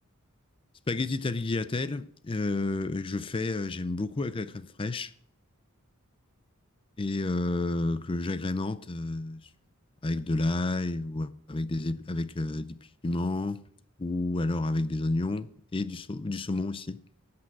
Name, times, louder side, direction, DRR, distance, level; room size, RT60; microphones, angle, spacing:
voice 1, 0.9-5.1 7.0-9.5 10.0-12.8 13.0-13.6 14.0-17.0, left 2 dB, 25° left, 0.5 m, -30 dB
13.5 x 8.7 x 4.6 m
head